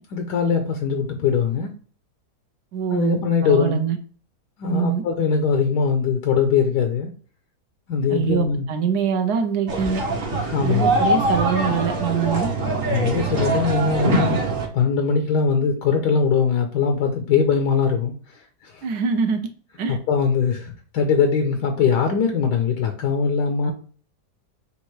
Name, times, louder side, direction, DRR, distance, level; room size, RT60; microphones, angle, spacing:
voice 1, 0.1-1.7 2.9-3.9 4.6-7.1 7.9-8.7 10.4-11.0 12.9-14.4 14.7-18.8 19.9-23.7, left 6 dB, 80° left, 1.3 m, -21 dB
voice 2, 2.7-4.0 4.6-5.0 8.1-10.0 10.6-12.5 18.8-19.4 19.8-20.0 23.6-23.7, right 7 dB, 75° right, 1.2 m, -24 dB
sound 1, 9.7-14.7, right 2 dB, 40° right, 1.0 m, -23 dB
6.6 x 2.5 x 3.1 m
omnidirectional pair, 1.8 m